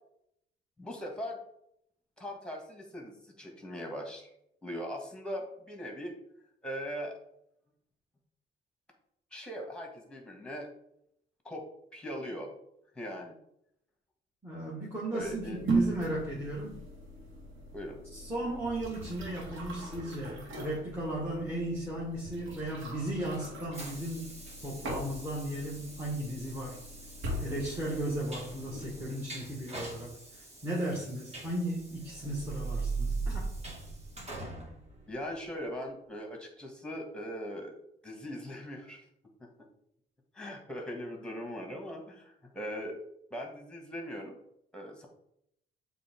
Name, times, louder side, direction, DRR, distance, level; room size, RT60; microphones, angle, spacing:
voice 1, 0.8-1.4 2.2-4.3 4.6-6.1 6.6-7.2 9.3-10.7 11.4-11.6 11.9-12.5 12.9-13.4 15.1-15.6 17.7-18.0 35.1-37.8 38.0-39.1 40.3-43.0 43.3-44.4 44.7-45.1, equal, 5° left, 1 dB, 1.9 m, -40 dB
voice 2, 14.4-16.8 18.1-24.3 24.6-26.8 27.4-33.5, right 1 dB, 15° right, -4 dB, 1.8 m, -36 dB
sound 1, 15.2-29.0, right 2 dB, 75° right, 2.2 m, -39 dB
Train, 23.2-35.7, right 1 dB, 30° right, 2.0 m, -48 dB
sound 2, 32.1-34.7, right 4 dB, 50° right, 2.3 m, -35 dB
7.3 x 3.5 x 4.6 m, 0.75 s
cardioid pair, 90°, 20 cm